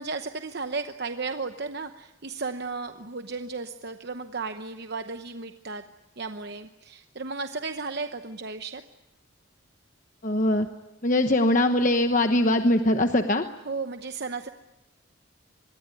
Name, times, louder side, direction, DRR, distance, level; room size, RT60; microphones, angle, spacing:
voice 1, 0.0-5.8 6.2-8.8 13.6-14.5, right 4 dB, 50° right, 7 dB, 0.9 m, -34 dB
voice 2, 10.2-10.7 11.0-13.5, left 1 dB, 40° left, 6 dB, 1.0 m, -22 dB
26.0 x 22.0 x 9.8 m, 1.0 s
head